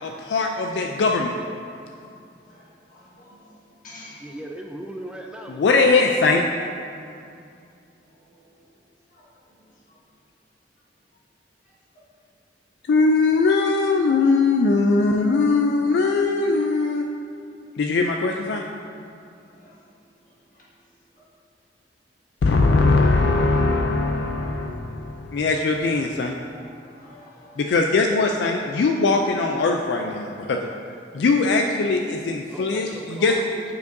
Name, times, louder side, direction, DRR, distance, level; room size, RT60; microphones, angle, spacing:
voice 1, 0.0-1.4 5.5-6.5 12.9-17.1 17.8-18.6 22.4-26.3 27.6-30.7 31.1-33.4, left 3 dB, 70° left, 3 dB, 0.3 m, -20 dB
voice 2, 2.9-3.4 3.8-4.1 9.1-9.2 19.6-19.7 26.5-27.6, left 2 dB, 50° left, -6 dB, 1.5 m, -48 dB
voice 3, 4.2-5.8 32.5-33.7, right 1 dB, 5° right, 1 dB, 0.3 m, -38 dB
9.2 x 5.2 x 2.6 m, 2.5 s
head